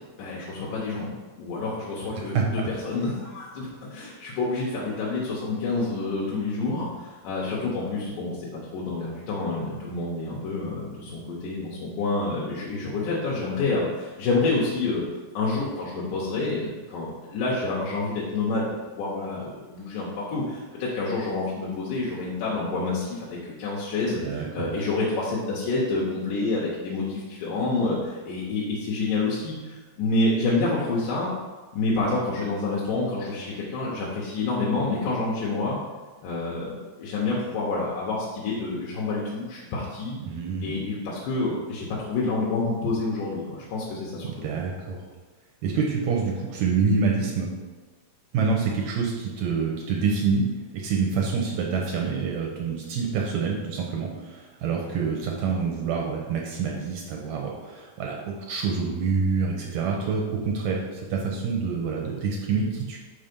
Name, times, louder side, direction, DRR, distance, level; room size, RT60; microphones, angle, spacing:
voice 1, 0.2-1.1 1.4-15.0 15.3-31.3 31.7-35.8 36.2-40.1 40.6-44.4, left 3 dB, 85° left, -5 dB, 2.5 m, -28 dB
voice 2, 2.3-2.7 24.2-24.8 40.2-40.8 44.2-45.0 45.6-47.5 48.3-50.4 50.7-63.0, right 5 dB, 75° right, -1 dB, 1.9 m, -27 dB
5.5 x 4.2 x 5.2 m, 1.3 s
omnidirectional pair, 3.6 m